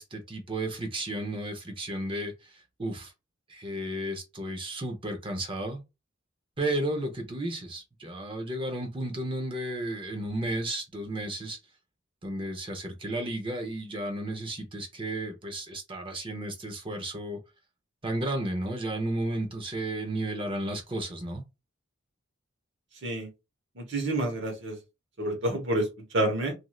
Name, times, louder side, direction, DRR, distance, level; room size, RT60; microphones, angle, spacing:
voice 1, 0.0-3.1 3.5-5.8 6.6-11.6 12.2-17.4 18.0-21.4, right 1 dB, 25° right, 0.7 m, -33 dB
voice 2, 23.8-24.8 25.2-25.9 26.1-26.5, right 1 dB, 60° right, 1.1 m, -28 dB
3.1 x 2.6 x 2.3 m
head